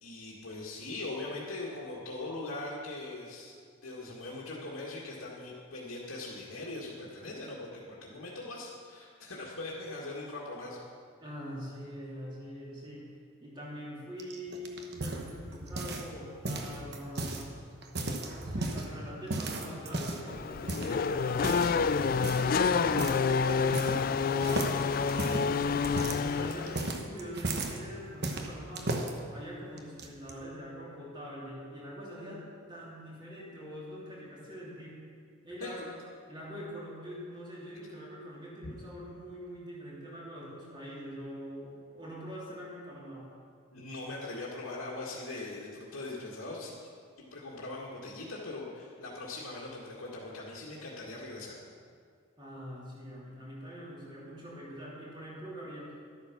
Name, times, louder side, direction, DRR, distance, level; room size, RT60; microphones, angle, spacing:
voice 1, 0.0-3.5 3.8-10.8 35.6-35.9 43.7-46.7 47.2-51.6, left 2 dB, 85° left, -6 dB, 1.8 m, -41 dB
voice 2, 11.2-13.1 13.4-17.5 18.3-28.9 29.3-35.0 35.4-36.0 36.3-43.3 52.4-56.0, equal, 20° right, -6 dB, 2.9 m, -44 dB
sound 1, 14.2-16.1 16.4-17.4 17.8-18.9 19.3-20.3 20.7-20.9 21.4-21.8 22.2-22.5 23.0-23.2 23.5-24.1 24.4-27.8 28.2-29.1 29.8-30.3, right 2 dB, 50° right, 1.1 m, -35 dB
Race car auto racing / Accelerating revving vroom, 20.3-27.0, left 5 dB, 40° left, 0.3 m, -28 dB
12.0 x 9.0 x 6.0 m, 2.1 s
head